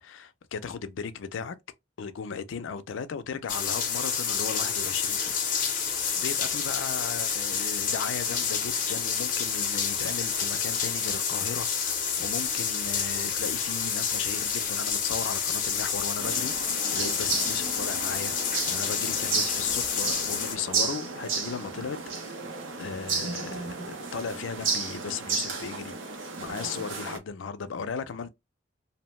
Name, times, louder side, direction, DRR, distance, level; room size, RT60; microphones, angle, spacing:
voice 1, 0.0-1.6 2.0-5.4 6.2-16.5 16.9-18.3 18.7-22.4 22.8-25.9 26.4-28.3, left 6 dB, 90° left, 0.4 m, -36 dB
sound 1, 3.5-20.6, left 6 dB, 45° left, 0.6 m, -29 dB
sound 2, 16.2-27.2, right 4 dB, 85° right, 0.7 m, -33 dB
2.6 x 2.1 x 3.0 m
head